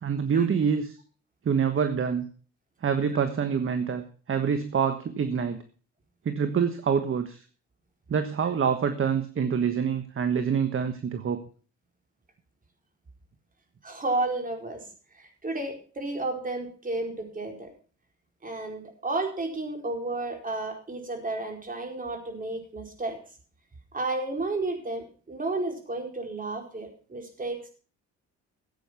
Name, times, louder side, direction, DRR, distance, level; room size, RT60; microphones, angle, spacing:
voice 1, 0.0-1.0 1.4-2.3 2.8-5.6 6.2-7.4 8.1-11.4, right 7 dB, 45° right, 9 dB, 1.4 m, -26 dB
voice 2, 13.8-14.9 15.1-17.7 18.4-23.2 23.9-27.7, right 2 dB, 30° right, 3 dB, 4.6 m, -32 dB
14.5 x 8.9 x 5.8 m, 0.41 s
cardioid pair, 90°, 30 cm